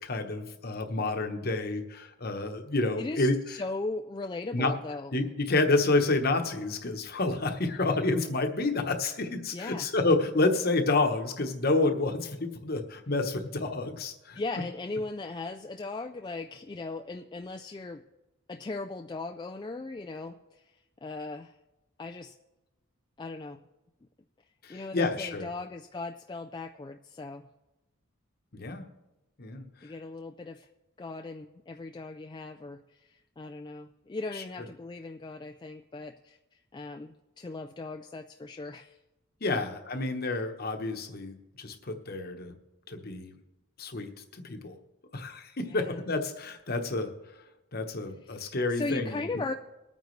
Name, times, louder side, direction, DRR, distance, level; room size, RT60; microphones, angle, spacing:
voice 1, 0.0-3.4 4.5-4.7 5.1-14.4 24.6-25.5 28.5-28.8 29.4-29.7 34.3-34.4 39.4-42.5 42.9-43.4 43.8-44.8 45.1-47.1 47.7-49.3, left 2 dB, 45° left, 6 dB, 1.1 m, -29 dB
voice 2, 3.0-5.1 9.5-9.9 14.4-18.0 18.5-20.6 21.0-21.5 22.0-22.3 23.2-23.6 24.7-27.5 29.8-30.7 31.0-36.4 36.7-39.0 39.5-39.6 45.6-46.0 48.2-49.5, left 3 dB, 20° left, 5 dB, 0.3 m, -38 dB
21.5 x 9.2 x 3.2 m, 1.0 s
head